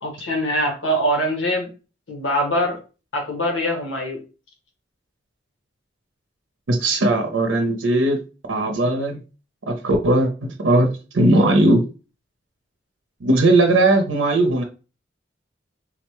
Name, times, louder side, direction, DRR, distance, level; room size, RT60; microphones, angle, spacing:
voice 1, 0.0-1.7 2.1-2.8 3.1-4.2, equal, 85° left, 0 dB, 1.1 m, -23 dB
voice 2, 6.7-8.2 8.5-9.2 9.7-11.8 13.2-14.6, right 2 dB, 90° right, 4 dB, 0.6 m, -18 dB
3.8 x 2.1 x 2.9 m, 0.33 s
head